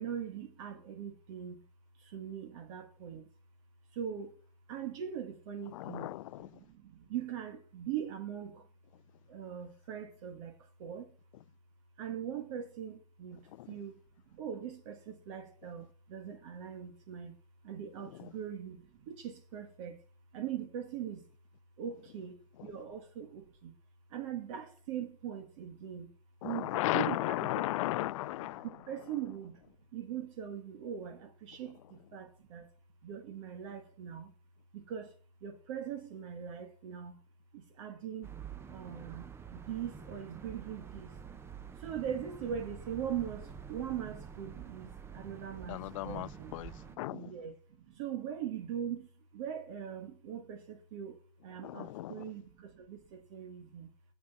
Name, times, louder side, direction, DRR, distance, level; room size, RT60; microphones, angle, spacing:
voice 1, 0.0-1.6 2.0-3.3 3.9-4.4 4.7-6.1 6.5-8.7 9.3-10.5 10.8-11.1 12.0-14.0 14.3-17.3 17.6-20.0 20.3-21.2 21.8-23.7 24.1-26.1 26.4-27.5 28.6-29.6 29.9-32.7 33.0-34.3 34.7-35.1 35.4-37.2 37.5-38.3 38.7-39.2 39.5-41.1 41.8-46.5 46.9-53.9, right 9 dB, 50° right, 1.8 m, -41 dB
voice 2, 5.7-6.6 13.5-13.8 18.0-18.3 22.6-22.7 26.4-28.8 45.7-47.3 51.6-52.2, left 17 dB, 55° left, 0.4 m, -36 dB
sound 1, 38.2-47.0, right 7 dB, 10° right, 0.7 m, -48 dB
8.1 x 6.2 x 7.2 m
hypercardioid pair, 140°, 20 cm